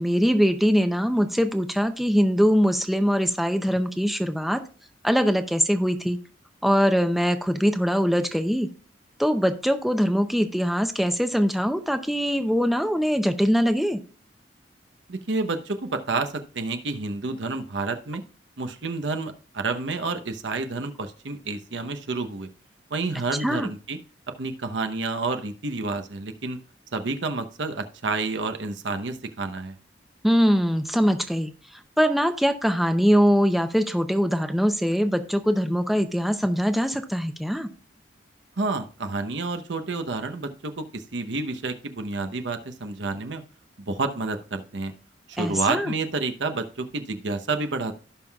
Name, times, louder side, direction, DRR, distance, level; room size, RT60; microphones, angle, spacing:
voice 1, 0.0-4.6 5.0-6.2 6.6-8.7 9.2-14.0 23.4-23.7 30.2-31.5 32.0-37.7 45.4-45.9, equal, ahead, 7 dB, 0.5 m, -22 dB
voice 2, 15.1-18.2 18.6-22.5 22.9-24.0 24.4-26.6 26.9-29.7 38.6-43.4 43.8-44.9 45.3-48.0, right 3 dB, 80° right, 7 dB, 0.9 m, -29 dB
16.5 x 5.6 x 2.3 m, 0.40 s
head